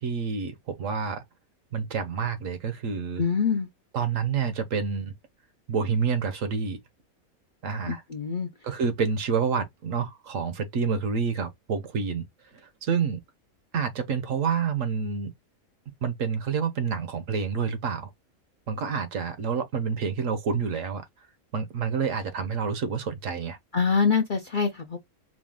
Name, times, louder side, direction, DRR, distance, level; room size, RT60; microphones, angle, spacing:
voice 1, 0.0-1.2 1.7-3.2 3.9-5.1 5.7-6.8 7.6-8.0 8.6-12.3 12.6-13.2 13.7-15.3 16.0-18.1 18.7-21.1 21.5-23.6, right 6 dB, 65° right, 1.2 m, -28 dB
voice 2, 3.2-3.7 7.9-8.5 23.7-25.0, left 5 dB, 55° left, 0.5 m, -25 dB
4.9 x 2.3 x 3.5 m
omnidirectional pair, 1.5 m